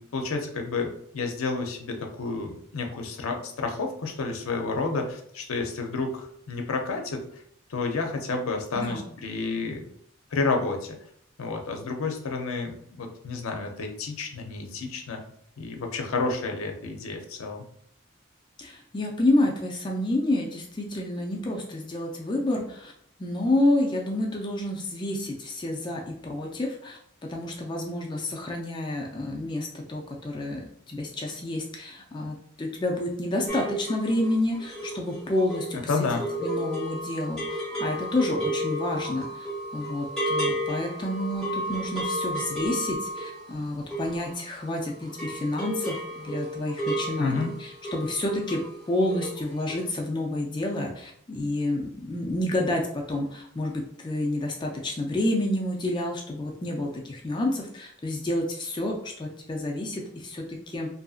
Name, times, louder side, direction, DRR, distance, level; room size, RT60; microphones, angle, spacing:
voice 1, 0.0-7.2 7.7-9.9 10.3-11.0 11.4-15.2 15.6-17.6 35.9-36.2 47.2-47.5, left 3 dB, 85° left, 3 dB, 0.5 m, -30 dB
voice 2, 18.6-22.9 23.2-27.0 27.3-35.8 36.4-39.5 39.7-48.6 48.9-60.9, left 1 dB, 20° left, 0 dB, 0.3 m, -29 dB
sound 1, 33.5-44.8 45.0-48.7 49.0-49.4 49.7-49.8, right 1 dB, 5° left, 1.2 m, -32 dB
2.7 x 2.5 x 2.3 m, 0.67 s
head